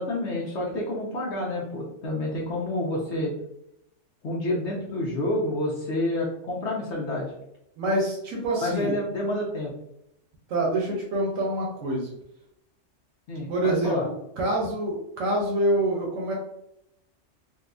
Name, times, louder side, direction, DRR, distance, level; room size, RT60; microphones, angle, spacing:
voice 1, 0.0-3.3 4.2-7.3 8.6-9.7 13.3-14.1, left 1 dB, 65° left, -3 dB, 1.0 m, -28 dB
voice 2, 7.8-8.9 10.5-12.1 13.5-13.9 14.4-16.3, right 1 dB, 90° right, -2 dB, 1.1 m, -26 dB
3.9 x 2.2 x 2.5 m, 0.79 s
omnidirectional pair, 1.3 m